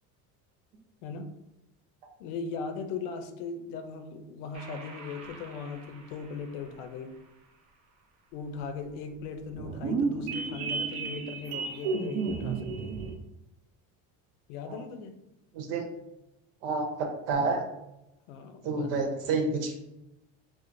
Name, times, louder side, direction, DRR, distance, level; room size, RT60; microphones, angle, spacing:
voice 1, 1.0-1.3 2.2-7.1 8.3-12.9 14.5-15.2 18.3-18.9, left 5 dB, 85° left, 8 dB, 0.6 m, -39 dB
sound 1, 4.5-6.1 9.5-13.1, right 4 dB, 45° right, 0.6 m, -33 dB
voice 2, 16.6-17.6 18.6-19.8, right 3 dB, 90° right, 2 dB, 0.9 m, -29 dB
4.4 x 2.0 x 2.6 m, 0.90 s
cardioid pair, 130°, 39 cm